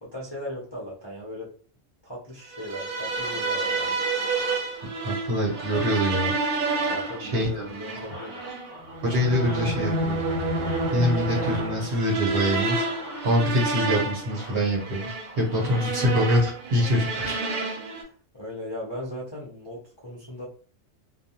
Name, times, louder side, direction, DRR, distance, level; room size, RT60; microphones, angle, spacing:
voice 1, 0.0-1.5 2.0-3.9 6.9-8.4 15.6-15.9 18.0-20.4, left 1 dB, 30° left, -7 dB, 0.5 m, -37 dB
sound 1, 2.5-18.0, right 3 dB, 75° right, 1.1 m, -29 dB
sound 2, 3.2-16.2, equal, 20° right, 0.9 m, -44 dB
voice 2, 5.0-6.3 7.2-7.7 9.0-10.1 10.9-12.8 13.2-15.1 15.4-17.5, equal, 50° right, -2 dB, 1.0 m, -24 dB
2.3 x 2.2 x 2.8 m, 0.40 s
omnidirectional pair, 1.4 m